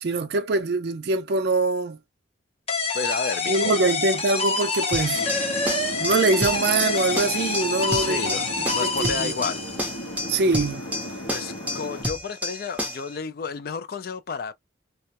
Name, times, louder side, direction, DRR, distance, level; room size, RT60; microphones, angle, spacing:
voice 1, 0.0-2.0 3.5-5.2 6.0-8.4 8.8-9.3 10.3-10.8, right 3 dB, 55° right, 0.4 m, -23 dB
sound 1, 2.7-10.0, left 3 dB, 30° left, 0.8 m, -27 dB
voice 2, 2.9-3.9 7.9-8.5 8.7-9.7 11.3-14.5, left 5 dB, 50° left, 0.4 m, -31 dB
sound 2, 4.9-13.1, left 1 dB, 5° right, 0.6 m, -31 dB
sound 3, 5.1-12.0, equal, 75° left, 0.9 m, -36 dB
2.3 x 2.0 x 2.8 m
head